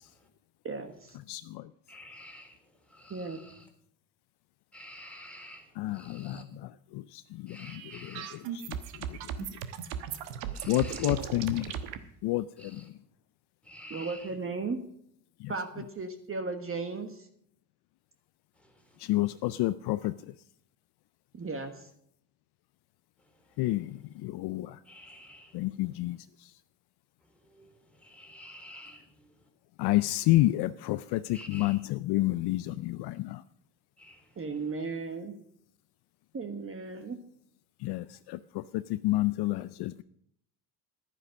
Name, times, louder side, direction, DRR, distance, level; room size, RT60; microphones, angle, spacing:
voice 1, 0.6-1.2 3.1-3.4 11.0-11.3 13.9-14.8 15.5-17.3 21.3-21.9 34.4-35.3 36.3-37.2, right 4 dB, 25° right, 7 dB, 1.3 m, -36 dB
voice 2, 1.3-1.6 5.8-6.4 6.9-7.2 7.5-8.1 8.7-8.8 10.7-11.7 12.2-12.5 12.7-12.8 19.0-20.1 23.6-23.9 24.2-24.8 25.5-26.2 29.8-33.4 37.8-40.0, left 17 dB, 55° left, 15 dB, 0.5 m, -29 dB
voice 3, 1.9-2.5 3.0-3.1 4.7-5.6 6.0-6.4 7.5-8.4 10.5-11.1 12.6-12.8 13.7-14.1 24.9-25.5 28.0-29.0 31.3-31.8 34.0-34.1, left 1 dB, 5° left, 2 dB, 2.9 m, -48 dB
sound 1, 7.6-12.0, right 9 dB, 80° right, 1.3 m, -37 dB
11.0 x 9.8 x 6.3 m, 0.69 s
supercardioid pair, 90°, 47 cm